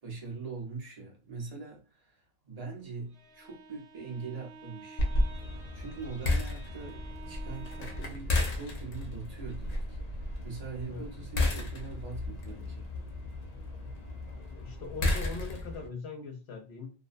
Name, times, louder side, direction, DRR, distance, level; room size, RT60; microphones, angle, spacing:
voice 1, 0.0-5.1 5.7-12.9, right 4 dB, 40° right, 0.9 m, -42 dB
Bowed string instrument, 3.0-8.3, right 4 dB, 80° right, 0.9 m, -51 dB
sound 1, 5.0-15.9, left 2 dB, 50° left, 0.6 m, -33 dB
voice 2, 14.5-16.9, left 4 dB, 85° left, 0.9 m, -41 dB
2.5 x 2.1 x 2.5 m
omnidirectional pair, 1.1 m